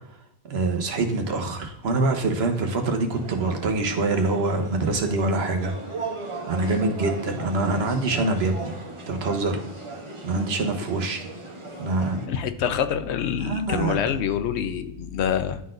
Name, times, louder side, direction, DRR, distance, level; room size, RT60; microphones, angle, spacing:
voice 1, 0.5-5.7 6.5-8.7 9.1-9.6 10.2-11.3 11.8-12.2 13.4-14.1, right 3 dB, 70° right, 4 dB, 1.2 m, -25 dB
sound 1, 3.1-12.3, right 2 dB, 30° right, 0.8 m, -38 dB
voice 2, 12.3-15.6, left 8 dB, 85° left, 10 dB, 0.9 m, -26 dB
10.5 x 3.9 x 2.5 m, 0.82 s
omnidirectional pair, 1.1 m